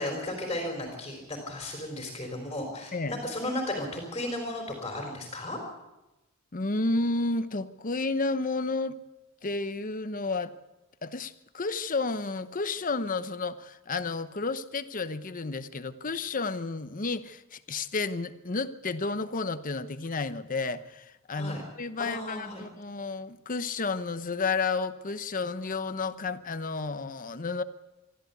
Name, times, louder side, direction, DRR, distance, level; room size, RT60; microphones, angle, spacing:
voice 1, 0.0-5.6 21.3-21.6 22.0-22.6, left 1 dB, 25° left, 1 dB, 4.1 m, -34 dB
voice 2, 6.5-9.0 9.4-10.5 11.0-27.6, left 3 dB, 40° left, 12 dB, 0.9 m, -31 dB
23.5 x 13.5 x 8.2 m, 1.0 s
head